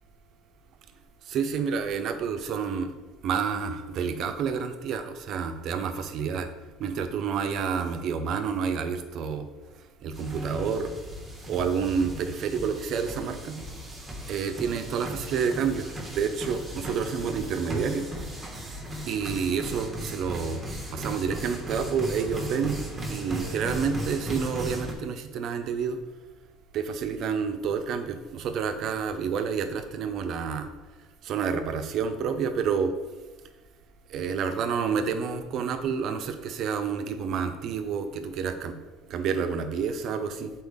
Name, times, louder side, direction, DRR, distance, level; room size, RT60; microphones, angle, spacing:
voice 1, 1.3-2.9 3.2-6.5 6.8-9.5 10.0-10.9 11.5-13.6 14.3-18.1 19.1-20.6 20.9-22.8 23.1-26.0 26.7-30.7 31.2-32.9 34.1-38.8 39.1-40.5, right 6 dB, 45° right, 8 dB, 0.6 m, -29 dB
sound 1, 10.1-24.9, equal, 10° right, 1.3 m, -37 dB
7.9 x 4.4 x 3.6 m, 1.2 s
cardioid pair, 160°, 0 cm